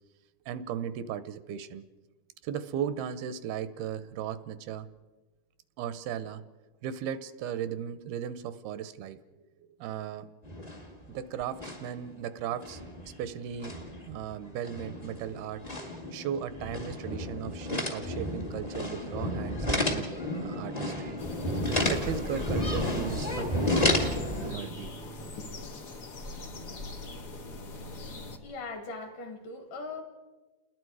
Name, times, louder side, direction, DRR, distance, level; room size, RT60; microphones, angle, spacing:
voice 1, 0.5-1.8 2.4-4.9 5.8-6.4 6.8-9.2 9.8-10.3 11.1-12.8 13.2-15.7 16.1-20.1 20.4-21.2 21.9-24.9 26.5-26.6 27.3-27.4, right 9 dB, 80° right, 13 dB, 2.7 m, -36 dB
sound 1, 10.4-11.2 11.4-12.0 12.4-24.5, left 1 dB, 25° left, 0.8 m, -32 dB
sound 2, 21.2-28.4, left 2 dB, 80° left, 0.8 m, -40 dB
voice 2, 28.4-30.0, left 3 dB, 55° left, 5 dB, 3.7 m, -40 dB
29.5 x 20.5 x 4.8 m, 1.2 s
omnidirectional pair, 4.5 m